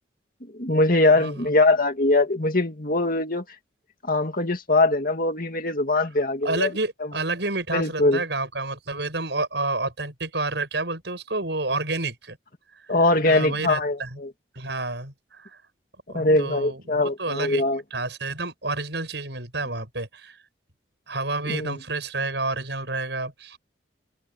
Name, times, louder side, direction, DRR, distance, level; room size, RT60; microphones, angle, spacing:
voice 1, 0.5-3.4 4.1-6.7 7.7-8.2 12.9-14.3 16.1-17.8 21.5-21.8, left 2 dB, 50° left, 2.3 m, -22 dB
voice 2, 1.1-1.5 6.4-12.4 12.9-13.0 13.2-14.2 14.5-15.6 16.1-20.4 21.1-23.6, right 3 dB, 65° right, 7.5 m, -30 dB
open air
head